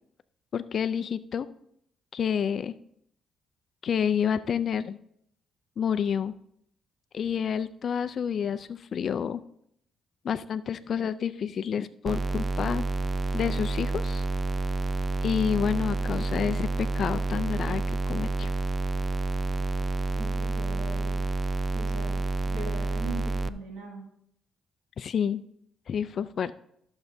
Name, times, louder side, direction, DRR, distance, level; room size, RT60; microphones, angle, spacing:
voice 1, 0.5-1.5 2.1-2.7 3.8-5.0 5.8-6.3 7.1-9.4 10.2-12.8 13.3-14.3 15.2-18.5 25.0-25.4 25.9-26.5, left 7 dB, 55° left, 13 dB, 0.4 m, -29 dB
sound 1, 12.1-23.5, right 3 dB, 30° right, 0.4 m, -29 dB
voice 2, 20.2-21.2 21.7-24.0, right 3 dB, 90° right, -1 dB, 2.2 m, -40 dB
14.0 x 6.9 x 2.7 m, 0.71 s
cardioid pair, 90°, 0 cm